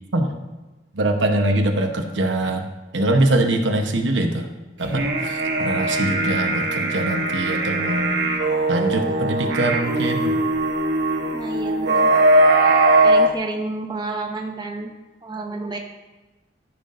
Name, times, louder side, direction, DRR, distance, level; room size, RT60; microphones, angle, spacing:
voice 1, 0.9-2.7 2.9-4.5 4.8-8.1 8.7-10.4, right 1 dB, 85° right, 4 dB, 1.0 m, -22 dB
sound 1, 4.8-13.3, right 2 dB, 65° right, 1.1 m, -20 dB
voice 2, 11.3-12.3 13.0-14.9 15.2-15.8, right 2 dB, 25° right, 2 dB, 0.7 m, -30 dB
14.0 x 5.9 x 2.6 m, 1.2 s
head